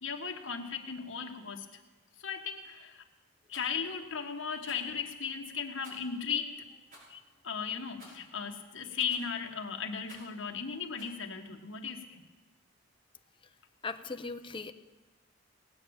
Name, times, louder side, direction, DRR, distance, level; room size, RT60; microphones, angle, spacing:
voice 1, 0.0-1.7 2.2-3.0 3.5-6.6 7.4-12.2, left 6 dB, 70° left, 3 dB, 1.5 m, -36 dB
Rattle, 3.5-3.7 4.6-4.9 5.8-6.2 6.9-7.1 8.0-8.3 9.1-9.4 10.0-10.4 11.0-11.2, equal, 45° right, 5.5 m, -54 dB
voice 2, 13.8-14.7, left 4 dB, 25° left, 9 dB, 0.6 m, -39 dB
18.5 x 8.9 x 7.1 m, 1.2 s
head